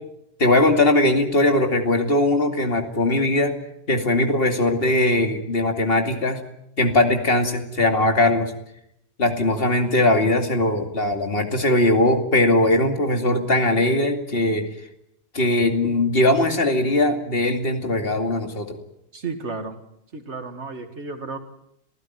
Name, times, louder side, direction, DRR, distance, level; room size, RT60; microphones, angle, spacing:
voice 1, 0.4-3.5 3.9-6.4 6.8-8.5 9.2-14.6 15.3-18.8, left 1 dB, 55° left, 5 dB, 2.7 m, -20 dB
voice 2, 19.1-19.8 20.1-21.4, right 4 dB, 90° right, 7 dB, 2.4 m, -32 dB
27.5 x 15.5 x 9.3 m, 0.79 s
omnidirectional pair, 1.1 m